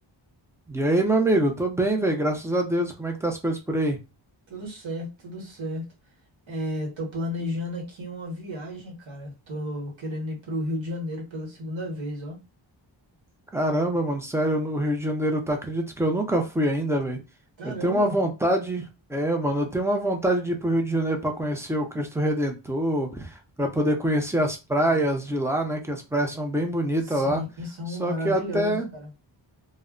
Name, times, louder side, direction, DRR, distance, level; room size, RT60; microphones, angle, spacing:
voice 1, 0.7-4.0 13.5-17.2 17.6-27.4 27.9-28.9, right 1 dB, 5° right, 0.5 m, -25 dB
voice 2, 4.5-5.8 6.5-12.4 17.6-18.1 27.0-29.1, left 1 dB, 75° right, 1.1 m, -33 dB
2.1 x 2.1 x 3.6 m
wide cardioid pair, 120°, 47 cm